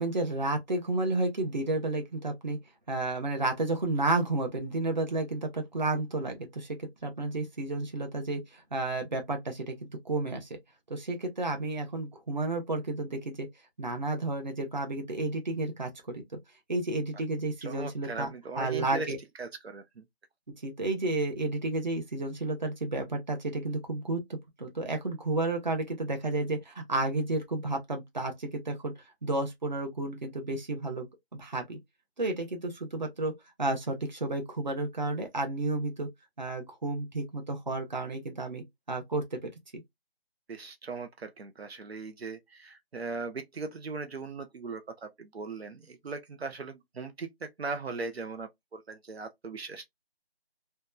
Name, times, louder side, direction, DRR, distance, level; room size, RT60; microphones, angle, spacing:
voice 1, 0.0-2.6 2.9-10.6 10.9-13.5 13.8-16.2 16.7-18.3 18.6-19.2 20.6-28.9 29.2-31.8 32.2-36.1 36.4-39.8, right 2 dB, 45° right, 0.8 m, -32 dB
voice 2, 17.6-19.1 19.4-19.8 40.5-49.8, right 4 dB, 80° right, 0.6 m, -39 dB
2.8 x 2.2 x 2.2 m
figure-of-eight pair, 175°, 31 cm